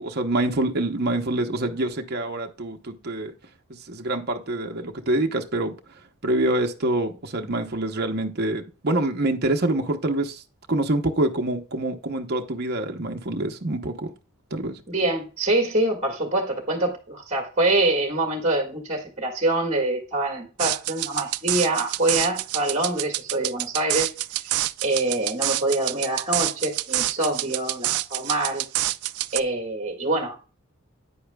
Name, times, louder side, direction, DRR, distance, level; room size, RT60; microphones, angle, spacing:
voice 1, 0.0-3.3 3.9-5.7 6.2-10.4 10.7-14.1 14.5-14.8, right 2 dB, 45° right, 0.9 m, -26 dB
voice 2, 14.9-28.6 29.3-30.4, right 2 dB, 30° right, 1.7 m, -25 dB
sound 1, 20.6-29.4, right 16 dB, 85° right, 0.4 m, -27 dB
9.5 x 8.5 x 2.3 m
head